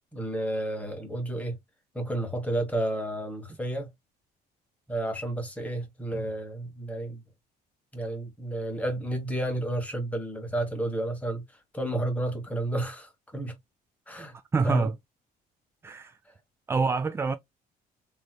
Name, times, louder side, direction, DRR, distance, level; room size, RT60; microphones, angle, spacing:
voice 1, 0.1-1.6 1.9-3.9 4.9-7.2 7.9-11.4 11.7-13.6 14.1-14.4 14.6-14.9, right 1 dB, 10° left, 1.4 m, -31 dB
voice 2, 14.3-14.9 15.8-16.2 16.7-17.3, right 4 dB, 15° right, 0.3 m, -27 dB
3.1 x 3.1 x 2.2 m
cardioid pair, 110°, 17 cm